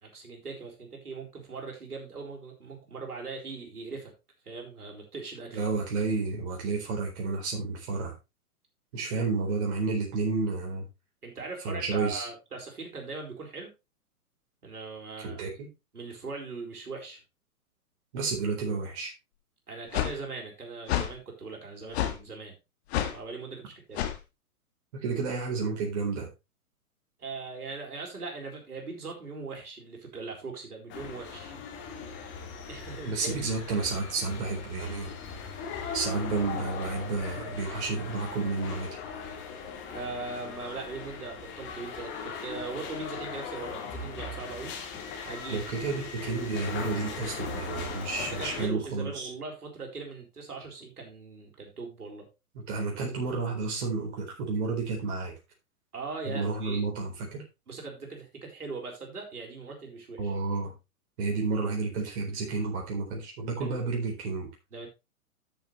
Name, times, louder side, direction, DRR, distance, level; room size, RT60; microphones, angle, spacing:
voice 1, 0.0-4.1 4.4-5.7 9.1-9.2 11.2-13.7 14.6-15.5 15.9-17.2 19.7-22.5 23.1-24.0 27.2-31.5 32.7-33.4 39.9-44.7 45.2-45.7 48.2-52.3 55.9-56.8 57.7-60.3 63.6-63.8 64.7-64.9, right 4 dB, 75° right, 0 dB, 4.5 m, -40 dB
voice 2, 5.5-8.1 8.9-10.8 11.6-12.3 15.2-15.7 18.1-19.1 25.0-26.3 33.0-35.1 35.9-39.0 45.5-49.3 52.5-55.3 56.2-57.4 60.2-60.7 61.2-64.5, right 4 dB, 45° right, 0 dB, 4.0 m, -31 dB
sound 1, 19.9-20.1 20.9-21.1 21.9-22.2 22.9-23.2 23.9-24.2, left 11 dB, 45° left, 2.0 m, -28 dB
sound 2, 30.9-48.7, left 5 dB, 25° left, 2.6 m, -39 dB
13.0 x 7.2 x 3.2 m, 0.26 s
figure-of-eight pair, 120°, 45 cm